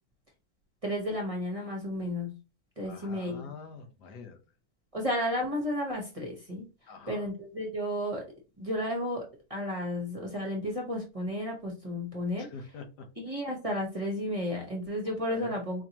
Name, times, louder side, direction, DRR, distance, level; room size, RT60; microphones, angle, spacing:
voice 1, 0.8-2.3 2.8-3.5 4.9-6.7 7.1-8.3 8.6-12.5 13.2-15.8, left 1 dB, 25° right, -1 dB, 0.8 m, -33 dB
voice 2, 2.8-4.4 6.9-7.3 12.4-13.1 15.2-15.5, left 4 dB, 90° left, 5 dB, 1.4 m, -45 dB
4.4 x 2.8 x 2.9 m, 0.31 s
omnidirectional pair, 1.7 m